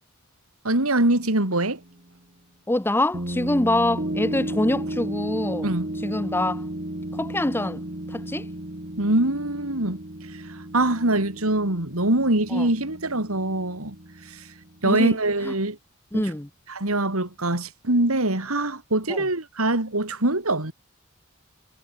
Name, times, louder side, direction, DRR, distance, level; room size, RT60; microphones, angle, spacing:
voice 1, 0.6-1.8 5.6-5.9 9.0-10.0 10.7-14.0 14.8-15.8 16.7-20.7, right 2 dB, 85° right, 4.1 m, -23 dB
sound 1, 1.8-1.9 3.1-14.9 16.1-16.2, right 1 dB, 45° right, 2.3 m, -34 dB
voice 2, 2.7-5.7 6.0-6.6 7.1-7.8 8.1-8.5 12.5-12.7 14.8-15.2 15.4-15.5 16.1-16.5 19.1-19.2, left 1 dB, 10° left, 0.7 m, -25 dB
head